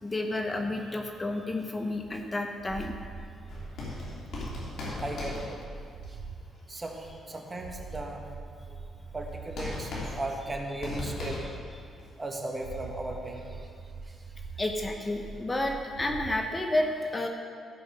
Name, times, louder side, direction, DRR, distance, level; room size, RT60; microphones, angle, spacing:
voice 1, 0.0-2.9 14.6-17.3, left 1 dB, 25° left, 3 dB, 0.9 m, -30 dB
sound 1, 1.9-6.4 6.8-11.4 11.8-12.3 12.6-16.4, right 4 dB, 90° right, 1.6 m, -44 dB
sound 2, 3.5-6.0 9.3-9.4 9.6-11.7 12.0-12.1, left 3 dB, 70° left, 2.9 m, -38 dB
voice 2, 5.0-5.6 6.1-6.2 6.7-8.2 9.1-11.4 12.2-13.7 14.1-14.2, right 1 dB, 25° right, 2 dB, 1.5 m, -36 dB
14.5 x 5.3 x 5.5 m, 2.3 s
cardioid pair, 75°, 0 cm